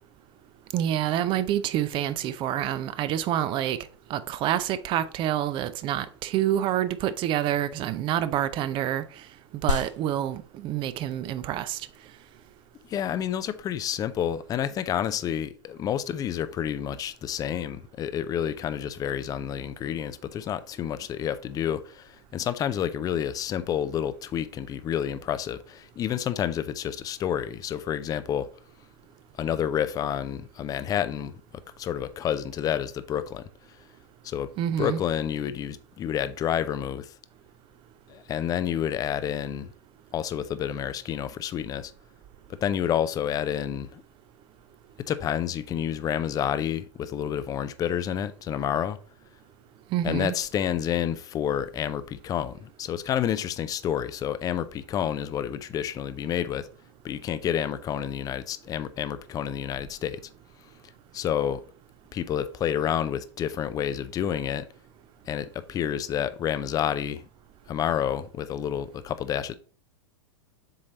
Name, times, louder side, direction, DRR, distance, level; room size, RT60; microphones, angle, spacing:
voice 1, 0.7-9.2 9.6-11.9 34.6-35.0 49.9-50.3, right 11 dB, 35° right, 0.5 m, -27 dB
sound 1, 9.7-19.7, left 4 dB, 85° left, 0.8 m, -39 dB
voice 2, 12.9-28.5 29.4-33.8 34.2-34.5 34.8-37.1 38.1-39.7 40.1-41.9 42.5-44.0 45.0-49.0 50.0-56.7 57.0-60.2 61.1-61.6 62.1-64.7 65.3-67.3 67.7-69.5, left 9 dB, 25° left, 0.5 m, -29 dB
7.5 x 3.2 x 4.0 m
hypercardioid pair, 100°, 15 cm